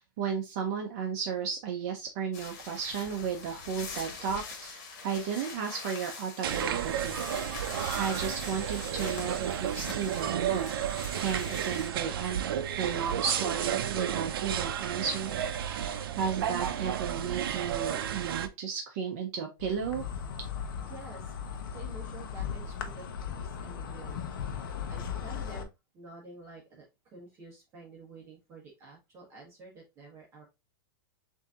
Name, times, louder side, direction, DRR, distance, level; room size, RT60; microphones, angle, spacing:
voice 1, 0.0-7.2 7.9-10.7 11.2-12.5 12.8-20.0, right 7 dB, 45° right, 3 dB, 0.7 m, -34 dB
sound 1, 2.3-11.9, left 4 dB, 45° left, 1.4 m, -43 dB
sound 2, 6.4-18.5, right 9 dB, 75° right, 0.6 m, -32 dB
Insect, 19.6-25.6, left 7 dB, 70° left, 0.8 m, -37 dB
voice 2, 20.9-21.3 21.7-25.7 25.9-30.4, right 3 dB, 20° right, -2 dB, 1.1 m, -50 dB
6.9 x 2.7 x 2.4 m, 0.24 s
supercardioid pair, 160°, 12 cm